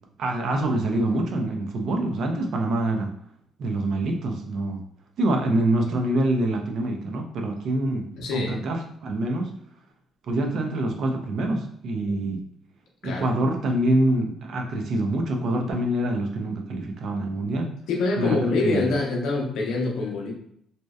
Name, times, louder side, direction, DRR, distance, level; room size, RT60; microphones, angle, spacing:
voice 1, 0.2-3.1 3.6-4.8 5.2-8.1 8.3-9.5 10.3-12.4 13.0-17.7 18.2-18.9, right 1 dB, 50° right, 3 dB, 0.4 m, -25 dB
voice 2, 8.2-8.6 13.0-13.3 17.9-20.3, left 3 dB, 70° left, 0 dB, 0.6 m, -25 dB
2.6 x 2.1 x 2.3 m, 0.70 s
cardioid pair, 165°, 0 cm